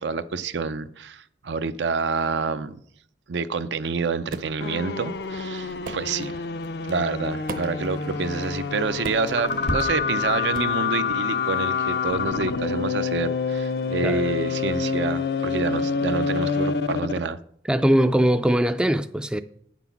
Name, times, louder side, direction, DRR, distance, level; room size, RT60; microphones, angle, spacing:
voice 1, 0.0-2.8 3.3-6.4 6.8-17.4, right 4 dB, 80° right, 0.5 m, -28 dB
sound 1, 4.3-4.6 5.8-6.1 7.5-7.8 9.0-9.4 10.5-10.8, right 2 dB, 50° right, 0.7 m, -36 dB
sound 2, 4.6-17.3, left 5 dB, 60° left, 0.5 m, -27 dB
Crackle, 5.1-10.4, equal, 85° left, 1.7 m, -39 dB
voice 2, 17.7-19.4, right 1 dB, 5° right, 0.3 m, -21 dB
9.1 x 6.0 x 5.7 m
head